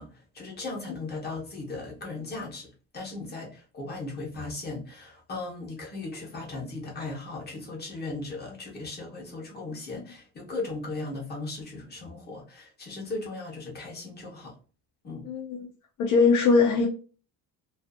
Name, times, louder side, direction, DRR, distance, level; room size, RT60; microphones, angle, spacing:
voice 1, 0.0-14.6 15.0-15.3, left 3 dB, 25° left, 0.8 m, -37 dB
voice 2, 16.0-16.9, left 4 dB, 55° left, 0.6 m, -20 dB
2.5 x 2.4 x 2.4 m
cardioid pair, 150°, 37 cm